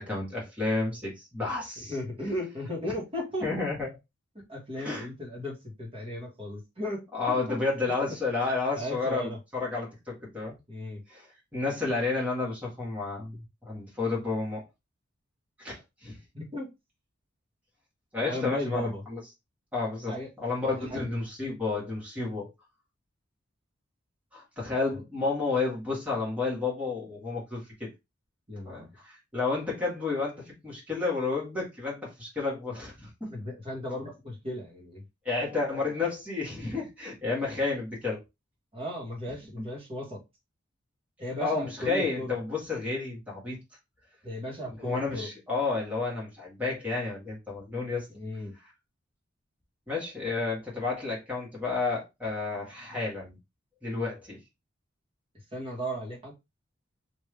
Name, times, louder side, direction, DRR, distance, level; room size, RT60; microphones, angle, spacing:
voice 1, 0.0-1.9 3.4-3.9 4.8-5.1 7.1-10.5 11.1-11.3 11.5-14.6 15.6-16.2 18.1-19.2 19.7-22.5 24.3-27.9 28.6-33.3 35.2-38.2 41.4-43.6 44.7-48.1 49.9-53.4 53.8-54.4, left 3 dB, 5° right, 1.6 m, -31 dB
voice 2, 1.9-3.5 4.5-7.6 8.8-9.4 10.7-11.0 16.3-16.7 18.2-19.0 20.1-20.3 20.7-21.0 28.5-28.9 33.3-35.0 38.7-40.2 41.2-42.3 44.2-45.3 48.1-48.5 55.5-56.3, left 1 dB, 25° right, 1.4 m, -36 dB
3.3 x 2.7 x 3.2 m
head